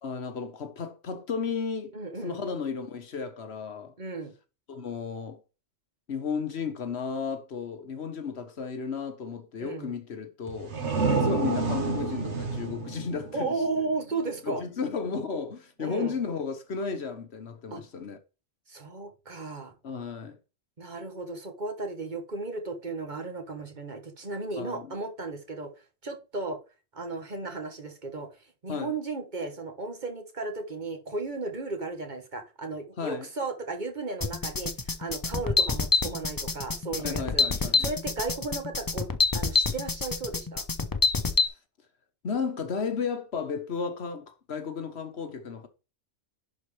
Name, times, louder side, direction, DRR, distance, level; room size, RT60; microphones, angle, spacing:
voice 1, 0.0-1.9 2.2-3.9 4.7-5.4 6.1-10.8 11.1-13.6 14.4-18.2 19.8-20.4 24.5-24.9 28.7-28.9 33.0-33.2 37.0-37.8 42.2-45.7, left 5 dB, 65° left, 1.3 m, -33 dB
voice 2, 1.9-2.4 4.0-4.3 9.6-9.9 10.9-11.1 13.3-14.6 15.8-16.1 17.7-17.8 18.7-19.7 20.8-25.7 26.0-26.6 26.9-28.3 28.6-37.5 37.8-39.1 39.3-40.6, right 3 dB, 40° right, 1.4 m, -35 dB
sound 1, 10.5-14.1, right 4 dB, 75° right, 1.6 m, -29 dB
sound 2, 34.2-41.5, left 4 dB, 25° left, 0.5 m, -26 dB
11.0 x 4.4 x 3.3 m
omnidirectional pair, 1.2 m